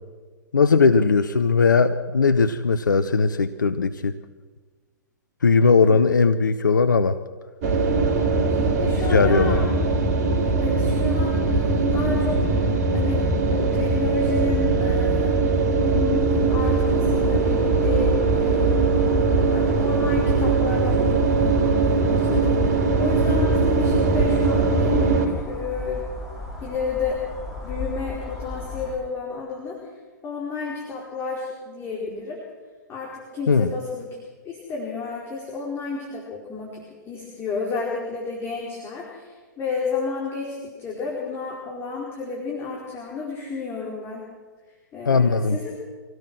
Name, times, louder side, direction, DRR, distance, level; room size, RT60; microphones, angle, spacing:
voice 1, 0.5-4.2 5.4-7.2 9.1-9.6 33.5-33.7 45.1-45.6, left 4 dB, 75° left, 10 dB, 0.9 m, -18 dB
sound 1, 7.6-25.3, right 3 dB, 45° right, 3.7 m, -21 dB
voice 2, 8.5-9.6 10.4-15.3 15.6-18.8 19.5-26.0 26.6-27.2 27.6-29.8 30.2-32.4 32.9-34.2 34.4-44.3 44.9-45.7, left 4 dB, 25° left, -3 dB, 4.8 m, -31 dB
sound 2, 16.8-29.0, left 2 dB, ahead, 7.1 m, -36 dB
24.5 x 17.5 x 6.4 m, 1.4 s
figure-of-eight pair, 110°, 10 cm